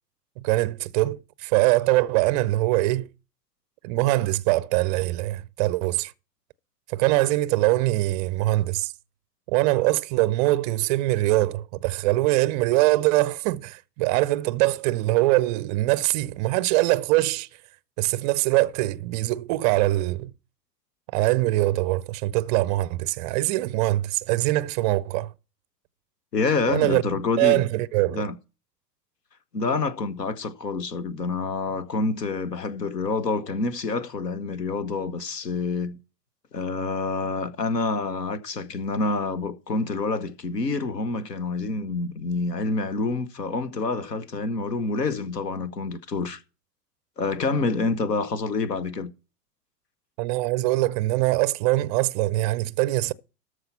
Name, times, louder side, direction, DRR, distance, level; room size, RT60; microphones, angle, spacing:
voice 1, 0.4-3.1 3.8-6.1 6.9-8.9 9.5-17.5 18.0-20.3 21.1-25.3 26.7-27.0 27.4-28.3 50.2-53.1, right 18 dB, 30° right, 0.4 m, -23 dB
voice 2, 26.3-27.6 28.1-28.3 29.5-36.0 36.5-46.4 47.2-49.1, left 3 dB, 80° left, 1.1 m, -27 dB
13.5 x 4.8 x 5.7 m
figure-of-eight pair, 90°, 48 cm